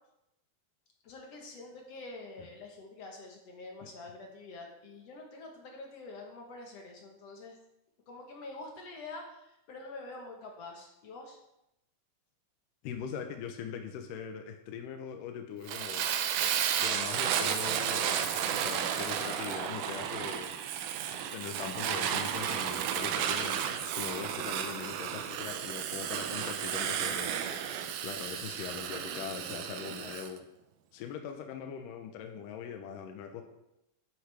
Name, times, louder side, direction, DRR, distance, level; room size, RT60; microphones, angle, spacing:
voice 1, 1.0-7.6 8.1-11.4 16.9-17.2, left 2 dB, 65° left, 1 dB, 1.6 m, -46 dB
voice 2, 12.8-16.1 16.8-20.5 21.3-27.4 28.0-30.4 30.9-33.4, left 7 dB, 85° left, 5 dB, 1.9 m, -41 dB
Fire, 15.7-30.3, right 9 dB, 75° right, 2.3 m, -33 dB
9.9 x 9.7 x 3.4 m, 0.87 s
omnidirectional pair, 4.8 m